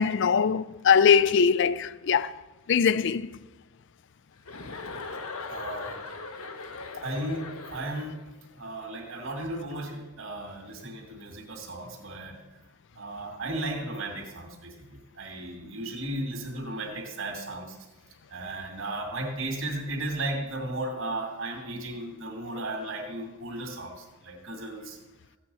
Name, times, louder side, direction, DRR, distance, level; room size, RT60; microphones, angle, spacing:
voice 1, 0.0-2.3 2.7-3.4, left 6 dB, 60° left, 0.4 m, -22 dB
Chuckle chortle, 4.5-8.2, left 3 dB, 85° left, 1.3 m, -39 dB
voice 2, 5.5-6.0 7.0-8.2 8.5-12.4 13.0-17.8 18.3-25.0, right 1 dB, 65° right, 2.4 m, -35 dB
15.0 x 9.1 x 5.5 m
head